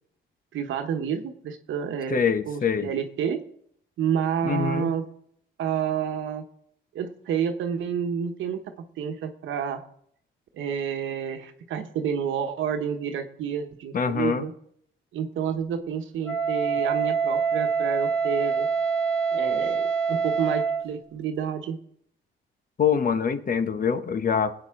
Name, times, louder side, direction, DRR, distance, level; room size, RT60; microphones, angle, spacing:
voice 1, 0.5-3.4 4.0-5.0 5.6-6.4 6.9-8.6 9.0-9.8 10.5-14.5 15.1-18.7 19.3-21.8, right 7 dB, 75° right, 6 dB, 1.2 m, -29 dB
voice 2, 2.1-2.9 4.4-4.9 13.9-14.4 22.8-24.5, left 6 dB, 45° left, 10 dB, 1.0 m, -24 dB
Wind instrument woodwind instrument, 16.2-20.9, right 5 dB, 5° left, 2.2 m, -25 dB
18.5 x 8.5 x 3.7 m, 0.67 s
cardioid pair, 90°, 20 cm